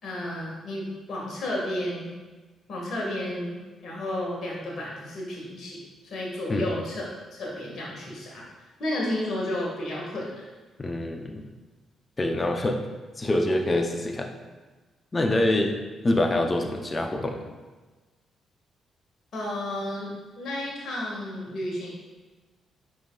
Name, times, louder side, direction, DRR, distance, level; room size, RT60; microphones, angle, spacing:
voice 1, 0.0-2.1 2.7-7.0 7.3-10.3 19.3-21.9, left 1 dB, 55° left, -3 dB, 2.0 m, -32 dB
voice 2, 10.8-11.5 12.2-12.8 13.2-14.3 15.1-15.8 16.0-17.4, left 1 dB, 30° left, 4 dB, 0.8 m, -25 dB
9.2 x 5.3 x 2.5 m, 1.3 s
figure-of-eight pair, 40°, 0 cm